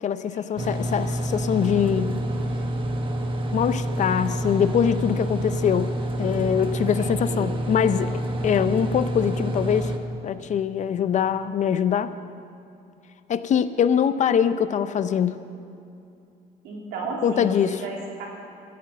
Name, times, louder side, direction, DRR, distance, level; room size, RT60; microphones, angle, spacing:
voice 1, 0.0-2.2 3.5-9.9 10.2-12.1 13.3-15.4 17.2-17.8, left 8 dB, 45° left, 13 dB, 0.6 m, -23 dB
sound 1, 0.6-10.0, right 1 dB, 30° right, 1.2 m, -28 dB
voice 2, 6.6-7.5 16.6-18.3, right 3 dB, 85° right, -2 dB, 3.1 m, -34 dB
13.5 x 8.2 x 7.5 m, 2.6 s
cardioid pair, 110°, 17 cm